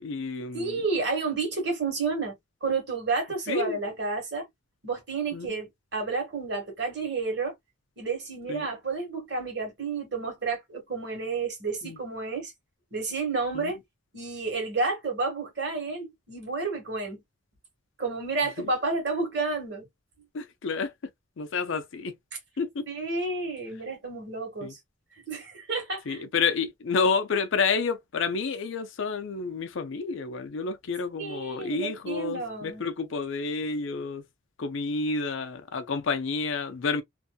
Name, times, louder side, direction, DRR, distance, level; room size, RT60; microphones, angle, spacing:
voice 1, 0.0-0.8 3.5-3.8 5.3-5.5 8.5-8.7 11.8-12.0 13.5-13.7 18.6-18.7 20.3-20.9 21.4-22.1 22.6-22.9 24.6-24.7 26.1-34.2 34.6-37.0, left 4 dB, 65° left, 0.4 m, -29 dB
voice 2, 0.5-2.3 2.6-4.5 4.8-7.5 8.0-12.5 12.9-13.8 14.1-17.2 18.0-19.9 22.9-24.8 25.3-26.2 31.2-32.8, right 4 dB, 50° right, 1.4 m, -30 dB
2.7 x 2.5 x 2.2 m
head